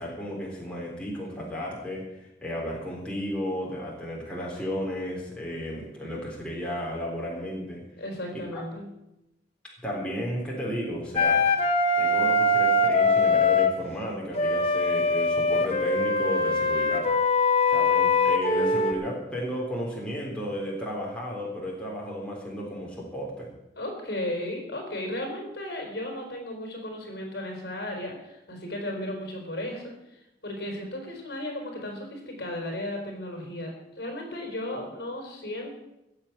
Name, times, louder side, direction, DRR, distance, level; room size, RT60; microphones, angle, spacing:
voice 1, 0.0-7.8 8.3-8.6 9.8-11.4 12.0-17.1 17.7-23.5, equal, 5° left, -4 dB, 3.7 m, -33 dB
voice 2, 8.0-8.9 23.7-29.9 30.4-35.7, left 1 dB, 60° left, 2 dB, 4.6 m, -35 dB
Wind instrument woodwind instrument, 11.2-13.8 14.4-18.9, left 3 dB, 35° left, 1.4 m, -22 dB
15.5 x 7.5 x 9.2 m, 0.89 s
head